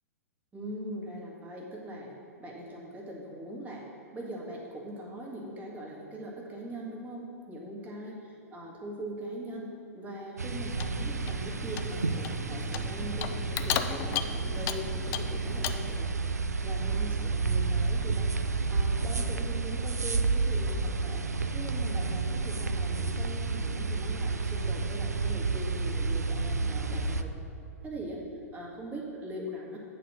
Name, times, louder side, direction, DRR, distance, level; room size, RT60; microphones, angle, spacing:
voice 1, 0.5-3.8 4.1-8.2 8.5-16.2 16.6-21.3 21.5-27.3 27.8-28.2 28.5-29.8, equal, 20° right, -3 dB, 1.7 m, -41 dB
sound 1, 10.4-27.2, right 4 dB, 85° right, 0.4 m, -30 dB
Clock, 10.5-16.0, left 10 dB, 30° left, 0.4 m, -36 dB
9.2 x 4.1 x 6.0 m, 2.8 s
figure-of-eight pair, 105°, 8 cm